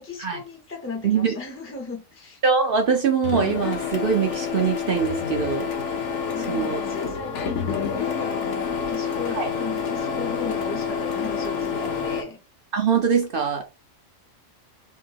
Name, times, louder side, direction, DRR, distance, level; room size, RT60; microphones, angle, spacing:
voice 1, 0.0-2.4 6.3-12.4, left 4 dB, 15° left, 0.4 m, -36 dB
voice 2, 1.0-1.3 2.4-5.7 6.5-6.8 9.3-9.5 12.7-13.6, right 6 dB, 55° right, 0.6 m, -23 dB
Printer, 3.2-12.2, left 6 dB, 65° left, 1.0 m, -28 dB
3.5 x 2.6 x 2.8 m
omnidirectional pair, 1.4 m